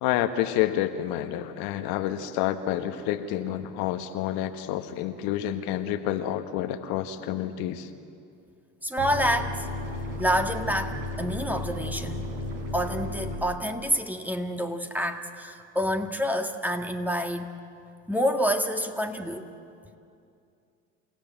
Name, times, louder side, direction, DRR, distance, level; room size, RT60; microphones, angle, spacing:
voice 1, 0.0-7.9, left 12 dB, 65° left, 8 dB, 1.5 m, -29 dB
voice 2, 8.8-9.7 10.2-12.2 12.7-17.5 18.1-19.5, equal, 5° right, 5 dB, 1.9 m, -28 dB
sound 1, 9.0-13.4, left 1 dB, 65° right, 5.5 m, -34 dB
29.0 x 16.5 x 9.1 m, 2.5 s
hypercardioid pair, 70°, 40 cm